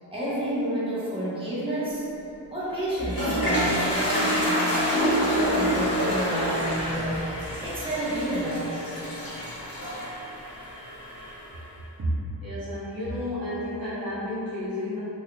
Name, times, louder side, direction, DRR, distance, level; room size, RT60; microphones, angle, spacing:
voice 1, 0.1-2.0 2.5-4.9 5.2-7.3 7.6-9.3, right 1 dB, 10° right, -10 dB, 1.2 m, -30 dB
Toilet flush, 2.7-11.6, equal, 50° left, 1.2 m, -27 dB
sound 1, 4.3-6.6, right 1 dB, 90° right, 0.7 m, -36 dB
voice 2, 12.0-15.0, equal, 50° right, -10 dB, 0.8 m, -31 dB
3.8 x 3.1 x 2.4 m, 3.0 s
wide cardioid pair, 70°, 44 cm